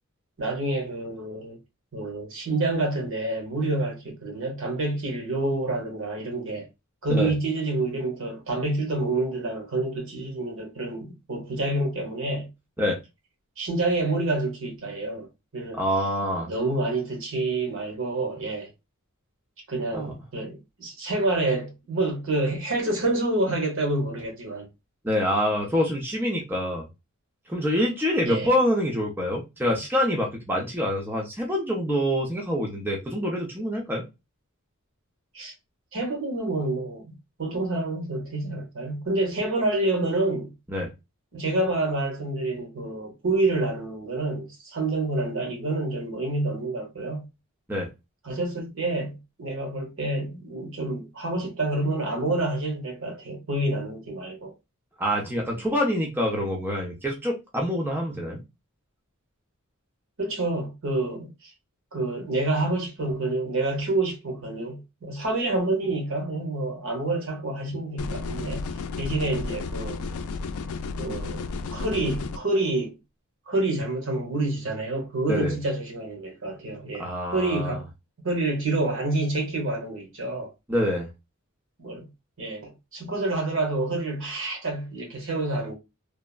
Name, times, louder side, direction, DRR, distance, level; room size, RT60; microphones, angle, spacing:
voice 1, 0.4-1.6 1.9-6.7 7.0-12.5 13.6-15.3 15.5-15.8 16.4-18.7 19.7-24.7 28.2-28.5 35.3-35.5 35.9-37.1 37.4-40.5 41.3-47.3 48.2-54.5 60.2-61.5 61.9-68.7 69.0-70.0 71.0-73.0 73.5-77.9 78.2-80.5 81.8-82.0 82.4-85.7, right 2 dB, 65° right, 1.2 m, -28 dB
voice 2, 15.7-16.5 19.9-20.1 25.0-26.8 27.5-34.0 40.7-40.9 47.7-47.9 55.0-58.4 75.3-75.5 77.0-77.8 80.7-81.1, equal, 10° right, 0.6 m, -26 dB
sound 1, 68.0-72.4, left 4 dB, 80° left, 0.4 m, -32 dB
3.2 x 2.1 x 2.3 m
head